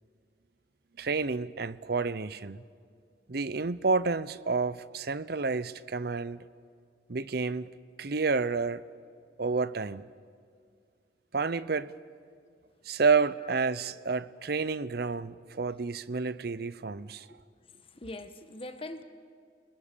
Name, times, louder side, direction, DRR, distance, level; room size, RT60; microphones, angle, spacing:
voice 1, 1.0-2.6 3.3-6.4 7.1-7.7 8.0-8.8 9.4-10.1 11.3-11.9 12.9-17.3, right 4 dB, 55° right, 0.7 m, -30 dB
voice 2, 17.7-19.0, left 2 dB, 30° left, 1.1 m, -42 dB
28.5 x 20.0 x 6.8 m
head